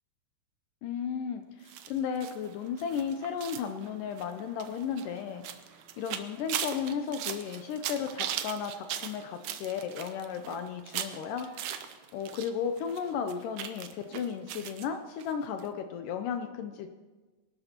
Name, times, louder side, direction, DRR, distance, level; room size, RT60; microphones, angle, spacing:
voice 1, 0.8-5.4 6.0-11.5 12.1-16.9, left 7 dB, 80° left, 7 dB, 2.0 m, -34 dB
sound 1, 1.7-12.5 12.8-14.9 15.2-15.3 15.6-15.7, right 10 dB, 80° right, 1.7 m, -39 dB
23.0 x 12.0 x 2.9 m, 1.3 s
omnidirectional pair, 4.3 m